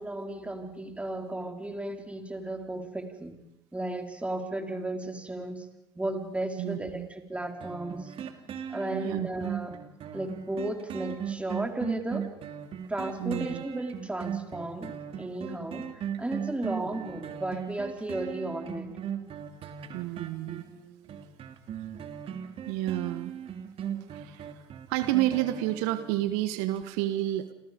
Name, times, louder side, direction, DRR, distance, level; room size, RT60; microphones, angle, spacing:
voice 1, 0.0-3.4 3.7-5.7 5.9-8.1 8.7-9.8 10.1-12.3 12.9-18.9, right 1 dB, 10° right, 3 dB, 4.4 m, -34 dB
voice 2, 6.6-7.1 8.9-9.3 13.2-13.6 19.9-20.6 22.7-23.3 24.1-24.5 24.9-27.5, right 15 dB, 70° right, 10 dB, 1.4 m, -30 dB
sound 1, 7.6-26.3 26.8-26.9, right 8 dB, 45° right, 3.0 m, -38 dB
30.0 x 26.5 x 5.3 m, 0.86 s
hypercardioid pair, 75°, 13 cm